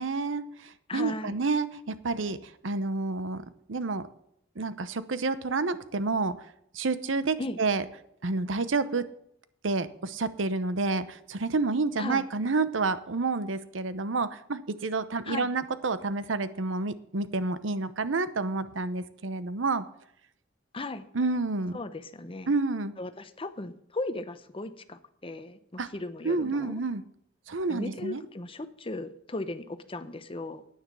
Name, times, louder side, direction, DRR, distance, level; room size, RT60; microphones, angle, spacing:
voice 1, 0.0-3.4 3.7-4.1 4.6-6.3 6.7-7.8 8.2-9.1 9.6-19.8 21.1-21.8 22.5-22.9 25.8-25.9 26.2-27.0 27.5-28.2, right 3 dB, 90° right, 14 dB, 0.8 m, -29 dB
voice 2, 0.9-1.4 7.4-7.6 12.0-12.3 15.2-15.5 20.7-21.0 21.7-22.5 23.0-26.8 27.7-30.6, left 2 dB, 30° left, 11 dB, 0.8 m, -37 dB
9.9 x 9.4 x 6.1 m, 0.73 s
head